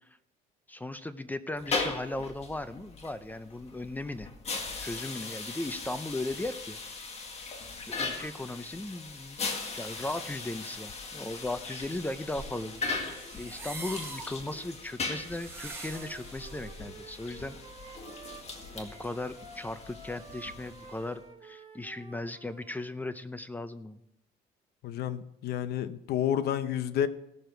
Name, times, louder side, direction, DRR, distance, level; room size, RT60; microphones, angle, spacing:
voice 1, 0.7-4.3 4.8-6.8 7.9-9.4 9.7-17.6 18.7-24.0, left 2 dB, 10° left, 0.6 m, -37 dB
sound 1, 1.5-21.1, left 4 dB, 40° left, 1.9 m, -39 dB
sound 2, 11.6-16.8, right 3 dB, 10° right, 4.8 m, -45 dB
Wind instrument woodwind instrument, 15.9-22.7, right 3 dB, 35° right, 2.2 m, -50 dB
voice 2, 24.8-27.1, left 10 dB, 70° left, 0.8 m, -30 dB
17.0 x 6.8 x 4.5 m
cardioid pair, 110°, 17 cm